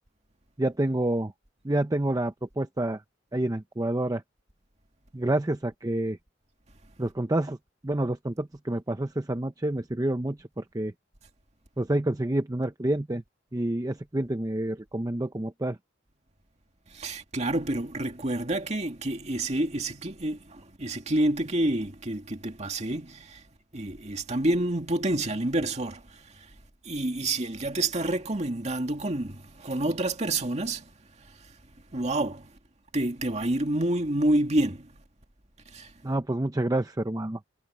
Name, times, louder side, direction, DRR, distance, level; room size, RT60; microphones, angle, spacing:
voice 1, 0.6-1.3 1.6-3.0 3.3-4.2 5.1-6.2 7.0-7.6 7.8-10.9 11.8-13.2 13.5-15.8 36.0-37.4, right 1 dB, 20° right, 0.6 m, -28 dB
voice 2, 16.9-23.4 23.7-26.5 26.8-30.9 31.9-32.5 32.9-34.9 35.7-35.9, right 1 dB, 35° right, 2.2 m, -28 dB
head